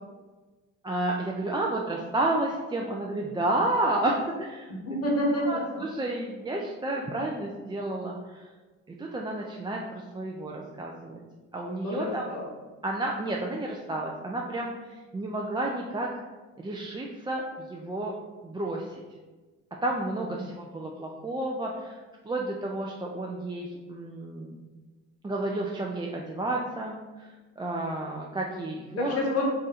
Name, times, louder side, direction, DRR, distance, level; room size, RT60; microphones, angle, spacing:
voice 1, 0.8-4.7 5.5-8.5 9.0-11.2 11.5-12.3 12.8-16.1 16.6-18.1 18.4-19.0 19.8-24.6 25.2-29.2, right 2 dB, 15° right, -1 dB, 0.4 m, -31 dB
voice 2, 4.7-5.8 11.8-12.5 20.4-20.5 29.0-29.5, left 1 dB, 55° left, -1 dB, 1.2 m, -28 dB
3.6 x 2.6 x 4.1 m, 1.3 s
cardioid pair, 90°, 30 cm